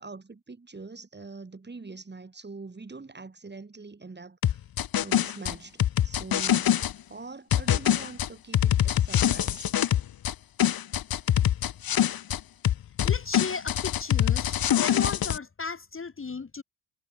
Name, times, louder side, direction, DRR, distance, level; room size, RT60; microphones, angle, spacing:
voice 1, 0.0-4.6 5.0-6.7 7.1-9.7, right 3 dB, 20° right, 6.6 m, -43 dB
sound 1, 4.4-6.9 7.5-10.3 10.6-12.4 12.6-15.4, left 10 dB, 45° left, 1.3 m, -24 dB
voice 2, 13.0-16.6, left 4 dB, 25° left, 3.1 m, -35 dB
cardioid pair, 110°, 48 cm